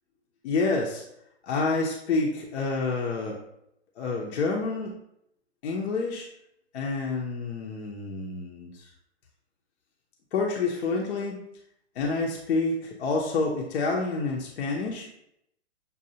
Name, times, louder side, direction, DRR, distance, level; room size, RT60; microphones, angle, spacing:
voice 1, 0.4-1.0 1.4-3.5 4.0-5.0 5.6-6.3 6.7-8.9 10.3-11.4 11.9-15.1, left 3 dB, 60° left, -1 dB, 0.8 m, -28 dB
6.8 x 2.4 x 2.7 m, 0.76 s
hypercardioid pair, 130°, 36 cm